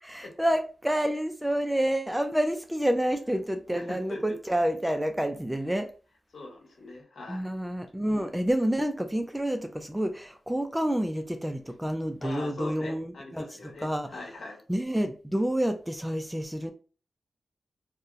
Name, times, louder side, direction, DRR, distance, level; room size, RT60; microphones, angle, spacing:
voice 1, 0.0-5.9 7.3-14.2 14.7-16.7, right 1 dB, 5° right, 0.3 m, -29 dB
voice 2, 3.7-4.2 6.3-7.5 8.1-8.2 12.2-14.6, left 2 dB, 70° left, 1.1 m, -41 dB
2.7 x 2.0 x 3.7 m
wide cardioid pair, 110°, 0 cm